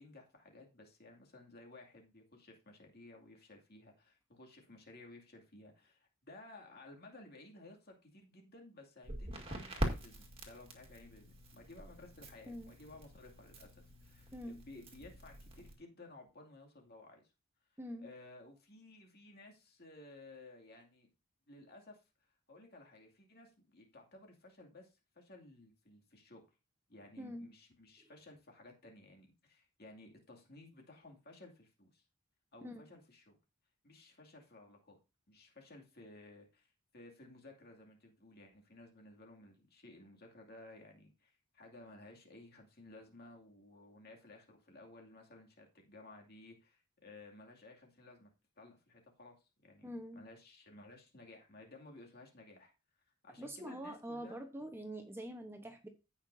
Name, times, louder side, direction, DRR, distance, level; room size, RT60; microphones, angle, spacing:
voice 1, 0.0-17.2 18.0-21.1 21.5-22.0 22.5-26.4 26.9-32.0 32.5-33.4 33.8-35.0 35.3-48.3 48.6-52.7 53.2-54.4, left 2 dB, 50° left, 1 dB, 2.4 m, -56 dB
Crackle, 9.0-15.7, right 1 dB, 25° right, 1.9 m, -44 dB
voice 2, 27.2-27.5 28.0-28.1 32.6-32.8 49.8-50.2 53.4-55.9, equal, 10° right, 5 dB, 1.0 m, -45 dB
15.5 x 5.8 x 2.7 m, 0.29 s
head